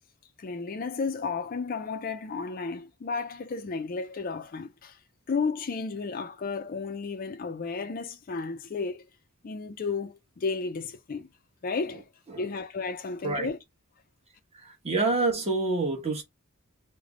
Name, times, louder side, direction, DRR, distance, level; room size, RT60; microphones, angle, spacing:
voice 1, 0.4-5.0 5.3-9.1 9.4-11.3 11.6-12.0 12.4-13.6, left 4 dB, 40° left, 0.4 m, -33 dB
voice 2, 14.5-16.2, right 3 dB, 30° right, 1.1 m, -27 dB
3.3 x 2.1 x 3.6 m
head